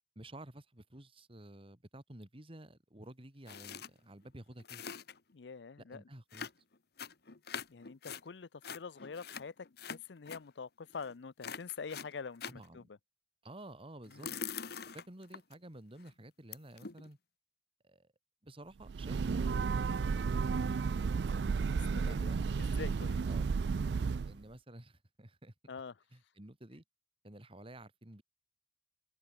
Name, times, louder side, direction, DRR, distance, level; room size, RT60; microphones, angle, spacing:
voice 1, 0.0-4.9 5.9-6.5 12.5-12.9 13.4-14.3 14.9-17.2 17.8-18.1 18.4-19.5 19.9-20.9 22.0-22.4 22.7-22.9 23.3-23.5 24.2-25.5 26.1-26.8 27.2-28.2, right 1 dB, 30° right, 2.5 m, -52 dB
sound 1, 3.5-3.9 4.2-4.3 4.5-5.3 6.3-8.2 8.6-10.4 10.9-11.1 11.4-12.7 14.0-15.5 16.0-16.1 16.5-17.1, left 7 dB, 65° left, 1.4 m, -44 dB
voice 2, 5.3-6.0 7.3-7.4 7.7-13.0 14.1-14.4 21.6-23.2 25.7-26.0, left 5 dB, 90° left, 0.6 m, -46 dB
Breathing / Train, 18.8-24.4, right 5 dB, 70° right, 0.4 m, -33 dB
open air
head